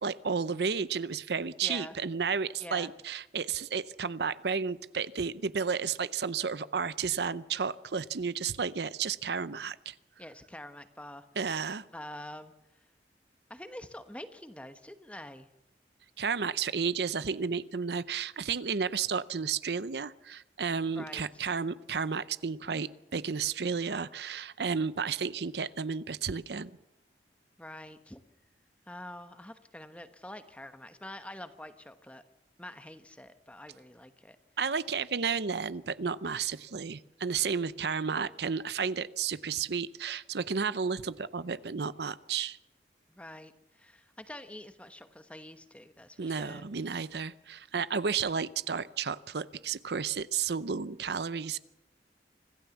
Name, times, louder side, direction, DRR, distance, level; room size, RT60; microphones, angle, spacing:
voice 1, 0.0-9.9 11.4-11.8 16.2-26.7 34.6-42.6 46.2-51.6, right 6 dB, 75° right, 16 dB, 0.7 m, -32 dB
voice 2, 1.6-1.9 2.6-2.9 10.2-11.3 11.9-12.5 13.5-15.5 21.0-21.5 27.6-28.2 28.9-32.2 32.6-34.4 43.1-46.6, left 1 dB, 5° left, 9 dB, 1.1 m, -46 dB
25.5 x 15.0 x 7.2 m, 0.95 s
head